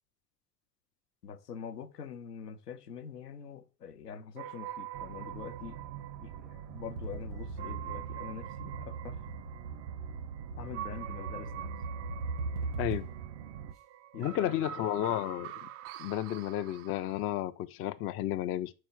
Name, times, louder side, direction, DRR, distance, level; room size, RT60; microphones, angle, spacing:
voice 1, 1.2-5.8 6.2-9.3 10.6-11.7 14.1-15.5, left 7 dB, 80° left, 0.8 m, -45 dB
sound 1, 4.4-17.4, right 13 dB, 35° right, 0.4 m, -46 dB
sound 2, 4.9-13.7, right 10 dB, 60° right, 0.7 m, -45 dB
sound 3, 7.0-13.3, right 3 dB, 80° right, 1.2 m, -40 dB
voice 2, 14.2-15.5 16.0-18.7, left 12 dB, 30° left, 0.4 m, -32 dB
5.0 x 4.3 x 5.7 m
figure-of-eight pair, 65°, 46 cm